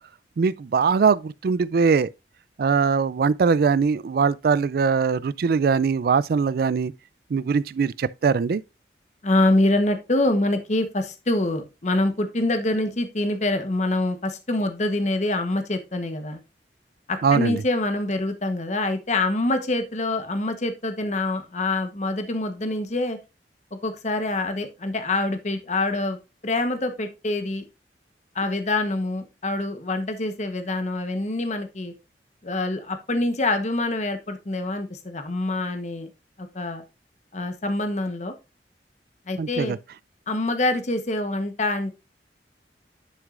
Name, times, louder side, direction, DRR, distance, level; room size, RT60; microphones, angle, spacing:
voice 1, 0.4-2.1 2.6-6.9 7.3-8.6 17.2-17.6 39.4-39.8, right 5 dB, 55° right, 0.3 m, -21 dB
voice 2, 9.2-16.4 17.1-23.2 23.7-27.6 28.3-31.9 32.4-36.1 36.4-36.8 37.3-38.3 39.3-39.8 40.3-41.9, left 2 dB, 40° left, 1.0 m, -25 dB
11.0 x 6.2 x 2.5 m
head